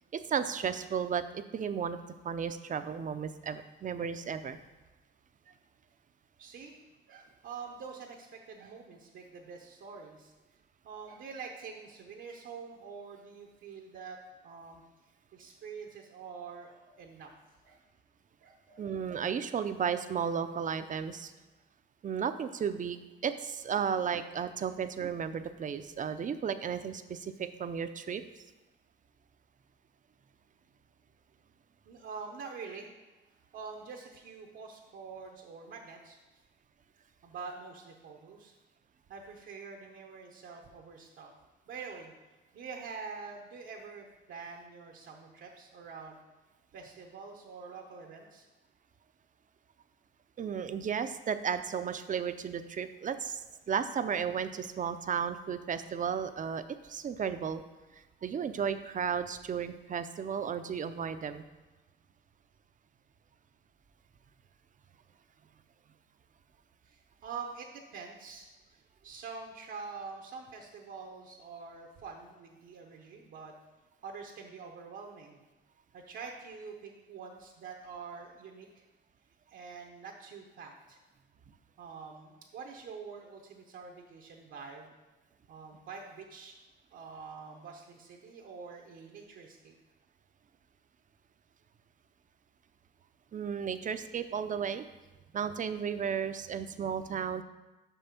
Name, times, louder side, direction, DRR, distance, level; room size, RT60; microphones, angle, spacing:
voice 1, 0.1-2.0 2.2-4.6 18.8-21.3 22.0-28.2 50.4-57.6 58.2-61.4 93.3-94.9 95.3-97.4, right 7 dB, 40° right, 11 dB, 0.5 m, -34 dB
voice 2, 6.4-6.8 7.1-10.3 10.8-14.2 14.4-14.8 15.3-17.3 17.6-17.8 18.4-18.8 31.9-32.9 33.5-36.2 37.2-38.5 39.1-41.3 41.7-42.1 42.5-46.2 46.7-48.5 66.9-73.5 74.0-75.4 75.9-78.8 79.5-81.0 81.8-84.9 85.5-86.5 86.9-89.7, right 5 dB, 75° right, 0 dB, 0.9 m, -46 dB
5.9 x 5.5 x 5.8 m, 1.1 s
cardioid pair, 90°, 20 cm